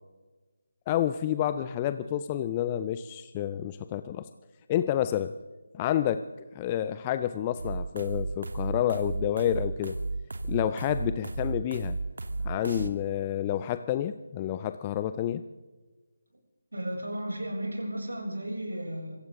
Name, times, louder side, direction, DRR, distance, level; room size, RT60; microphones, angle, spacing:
voice 1, 0.9-4.3 4.7-5.3 5.7-6.2 6.5-10.0 10.5-12.0 12.4-15.4, left 11 dB, 20° left, 12 dB, 0.5 m, -29 dB
sound 1, 7.6-12.9, right 3 dB, 60° right, 1.6 m, -34 dB
voice 2, 16.7-19.2, right 1 dB, 75° right, -1 dB, 6.9 m, -34 dB
25.5 x 15.5 x 3.7 m, 1.3 s
figure-of-eight pair, 155°, 0 cm